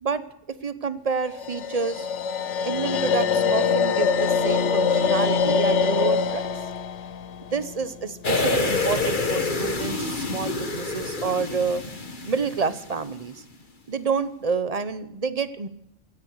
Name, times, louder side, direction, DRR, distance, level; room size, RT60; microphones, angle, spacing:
voice 1, 0.0-2.1 2.6-6.5 7.5-11.9 12.3-13.4 13.9-15.7, right 5 dB, 35° right, 14 dB, 0.9 m, -28 dB
sound 1, 1.3-8.5, left 5 dB, 85° left, 1.2 m, -24 dB
sound 2, 8.2-13.1 13.4-13.5, left 3 dB, 45° left, 1.8 m, -27 dB
17.5 x 16.0 x 4.8 m, 0.78 s
omnidirectional pair, 1.2 m